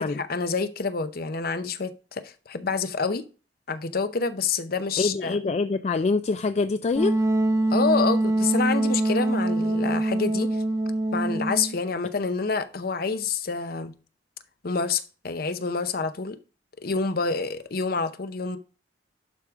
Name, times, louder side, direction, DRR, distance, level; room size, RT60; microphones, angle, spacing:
voice 1, 0.0-3.3 3.7-5.4 7.7-10.6 11.1-13.9 14.6-16.4 16.8-18.6, left 4 dB, 55° left, 0.7 m, -27 dB
voice 2, 5.0-7.2, left 3 dB, 35° left, 0.3 m, -25 dB
Wind instrument woodwind instrument, 7.0-11.8, right 1 dB, 15° right, 1.1 m, -24 dB
11.5 x 4.8 x 3.6 m
head